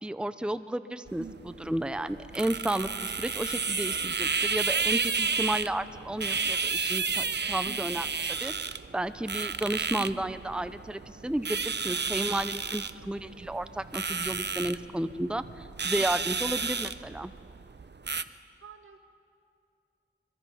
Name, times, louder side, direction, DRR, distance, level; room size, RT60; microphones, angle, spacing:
voice 1, 0.0-8.1 8.4-17.3, right 1 dB, 5° right, 12 dB, 0.7 m, -33 dB
sound 1, 1.1-18.2, right 5 dB, 55° right, 0.6 m, -32 dB
voice 2, 1.2-1.7 3.8-4.3 7.7-8.0 10.0-10.4 11.9-12.1 16.0-16.3 18.6-19.0, right 3 dB, 80° right, 5 dB, 1.7 m, -47 dB
24.5 x 22.0 x 5.7 m, 2.4 s
wide cardioid pair, 55°, 21 cm